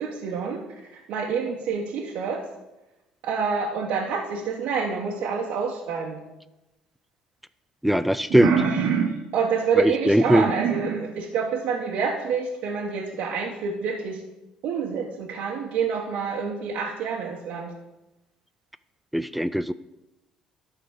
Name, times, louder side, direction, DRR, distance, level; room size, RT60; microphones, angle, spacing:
voice 1, 0.0-2.5 3.2-6.2 8.3-14.2 14.6-17.7, right 6 dB, 70° right, -2 dB, 1.1 m, -27 dB
voice 2, 7.8-8.5 9.8-10.5 19.1-19.7, equal, ahead, 13 dB, 0.3 m, -20 dB
11.5 x 3.9 x 6.3 m, 1.0 s
supercardioid pair, 80°, 2 cm